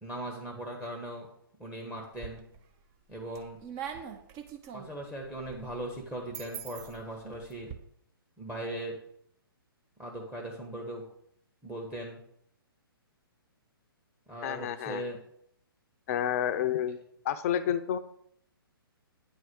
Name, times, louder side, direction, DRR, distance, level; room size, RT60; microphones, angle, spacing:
voice 1, 0.0-1.3 1.6-2.4 3.1-3.6 4.7-7.7 8.4-9.0 10.0-11.1 11.6-12.2 14.3-15.2, right 1 dB, 10° right, 1 dB, 1.3 m, -39 dB
sound 1, 2.0-2.7 3.1-7.7, right 8 dB, 30° right, 1.1 m, -43 dB
voice 2, 14.4-15.0 16.1-17.0 17.2-18.0, left 10 dB, 40° left, 11 dB, 0.6 m, -29 dB
9.6 x 4.7 x 6.3 m, 0.70 s
figure-of-eight pair, 130°, 13 cm